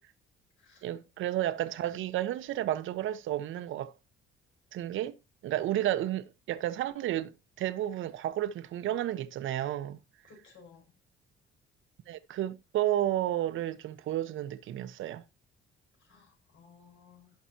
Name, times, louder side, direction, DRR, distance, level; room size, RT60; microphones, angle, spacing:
voice 1, 0.8-3.9 4.7-5.2 5.4-10.0 12.1-15.2, right 13 dB, 75° right, 1.1 m, -32 dB
voice 2, 10.3-10.9 16.0-17.3, left 5 dB, 70° left, 6.9 m, -57 dB
17.0 x 6.0 x 2.8 m
cardioid pair, 145°, 21 cm